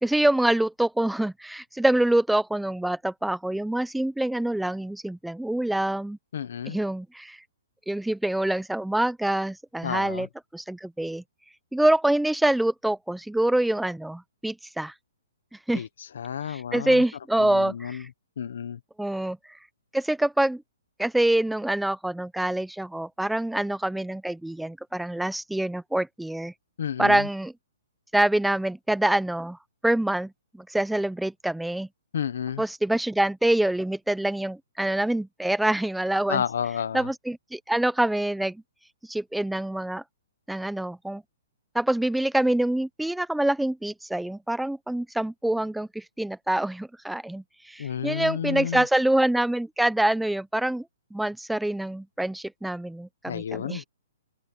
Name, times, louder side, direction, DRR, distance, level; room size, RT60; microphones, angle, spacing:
voice 1, 0.0-6.2 6.7-7.4 7.9-10.3 10.5-11.2 11.7-14.9 15.7-15.8 16.5-18.1 19.0-19.4 19.9-20.6 21.0-26.5 27.0-27.5 28.1-29.6 29.8-31.9 32.6-36.4 36.9-38.6 39.1-40.0 40.5-41.2 41.7-50.8 51.1-53.8, right 1 dB, ahead, 0.9 m, -25 dB
voice 2, 6.3-6.8 9.8-10.3 15.7-17.0 17.4-18.1 18.4-18.8 26.8-27.3 32.1-32.6 36.3-37.1 47.8-48.8 53.3-53.8, left 8 dB, 70° left, 0.9 m, -31 dB
open air
hypercardioid pair, 160°, 0 cm